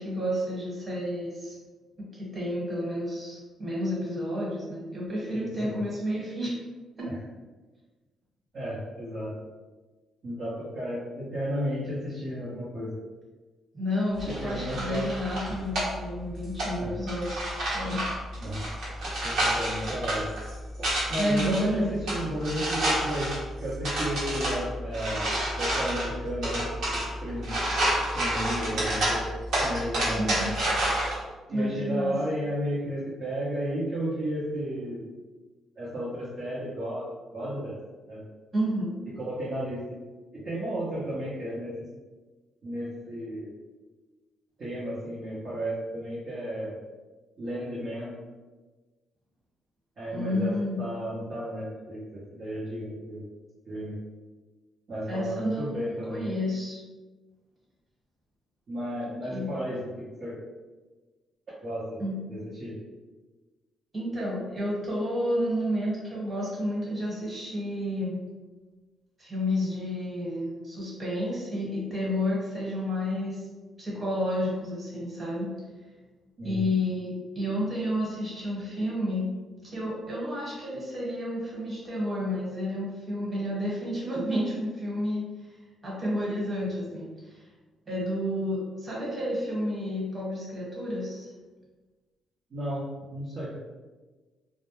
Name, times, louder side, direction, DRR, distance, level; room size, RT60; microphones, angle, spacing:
voice 1, 0.0-1.6 2.0-6.5 7.0-7.1 13.7-17.4 17.7-18.2 21.2-22.0 30.2-30.5 31.5-32.1 38.5-38.9 50.1-50.8 55.1-56.8 59.2-59.5 62.0-62.4 63.9-68.2 69.2-73.5 73.8-75.5 76.4-79.3 79.6-85.5 85.8-87.4 87.9-91.3, equal, 30° right, -6 dB, 1.2 m, -30 dB
voice 2, 5.3-5.8 7.0-7.2 8.5-9.3 10.2-12.9 14.3-15.1 16.8-16.9 18.4-18.7 19.2-20.3 20.8-23.3 23.6-25.3 25.6-26.7 26.9-27.5 28.1-29.3 29.6-30.5 31.5-35.0 35.8-37.0 37.3-37.8 38.1-38.2 39.2-40.0 40.3-41.7 42.6-43.5 44.6-46.8 47.4-48.2 50.0-50.5 50.8-53.3 53.7-54.0 54.9-56.2 58.7-60.4 61.6-62.0 62.3-62.8 76.4-76.6 92.5-92.8 93.1-93.5, equal, 50° right, -10 dB, 0.7 m, -33 dB
sound 1, 14.2-31.1, right 1 dB, 75° right, 1.0 m, -30 dB
2.2 x 2.1 x 3.0 m, 1.3 s
cardioid pair, 90°, 0 cm